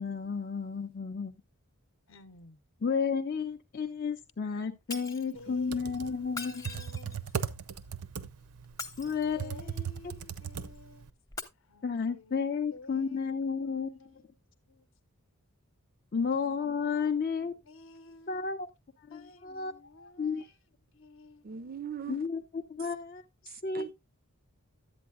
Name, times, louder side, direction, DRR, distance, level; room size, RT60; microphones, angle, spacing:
voice 1, 0.0-1.4 2.8-6.6 9.0-10.1 11.8-14.2 16.1-17.6 18.3-18.7 19.0-20.5 22.1-23.9, left 5 dB, 40° left, 0.5 m, -33 dB
voice 2, 2.1-2.6 4.9-7.2 9.4-11.1 11.6-12.4 12.7-13.2 13.6-14.1 14.7-14.9 16.6-17.1 17.7-18.4 19.1-20.5 20.9-21.5, left 2 dB, 60° left, 0.8 m, -52 dB
Shatter, 4.9-5.3 6.3-7.3 8.6-9.6 11.3-11.4, left 4 dB, 15° left, 0.7 m, -41 dB
Computer keyboard, 5.5-11.1, right 7 dB, 90° right, 0.6 m, -38 dB
voice 3, 21.4-22.3 23.5-23.9, right 8 dB, 40° right, 0.4 m, -41 dB
11.5 x 8.4 x 2.3 m
head